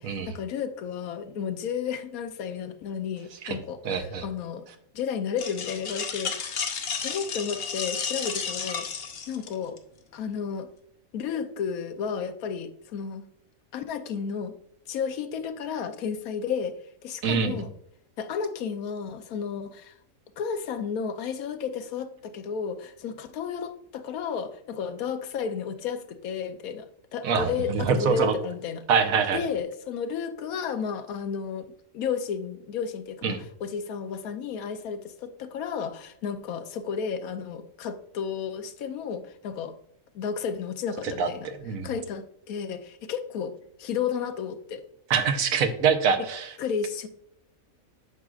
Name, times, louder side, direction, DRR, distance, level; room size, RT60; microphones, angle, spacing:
voice 1, 0.0-4.7 4.9-6.6 7.0-8.9 9.3-9.8 10.1-10.7 11.1-13.2 13.7-14.5 14.9-16.7 17.0-17.7 18.2-19.9 20.4-28.9 29.3-31.7 31.9-39.8 40.1-41.5 41.8-43.5 43.8-44.8 46.6-47.1, left 6 dB, 90° left, 9 dB, 1.2 m, -32 dB
voice 2, 3.8-4.2 17.2-17.6 27.2-28.3 28.9-29.4 33.2-33.4 41.2-41.9 45.1-46.5, right 6 dB, 80° right, 7 dB, 1.2 m, -25 dB
sound 1, 5.4-9.8, left 6 dB, 50° left, 0.9 m, -32 dB
8.3 x 6.3 x 2.4 m, 0.72 s
omnidirectional pair, 1.5 m